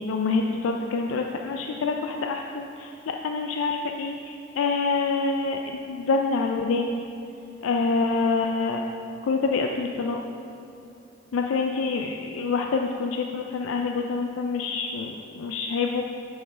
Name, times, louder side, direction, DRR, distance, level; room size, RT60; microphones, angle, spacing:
voice 1, 0.0-7.0 7.6-8.8 9.2-10.2 11.3-16.0, left 4 dB, 75° left, 3 dB, 0.3 m, -26 dB
8.4 x 5.5 x 3.3 m, 2.7 s
head